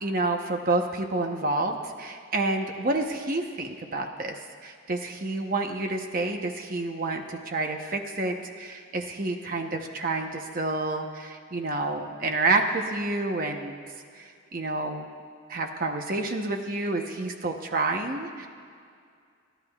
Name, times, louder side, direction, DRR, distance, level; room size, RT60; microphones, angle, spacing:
voice 1, 0.0-13.8 14.2-15.1 15.5-18.5, right 2 dB, 45° right, 3 dB, 0.9 m, -29 dB
28.5 x 11.5 x 2.4 m, 2.2 s
head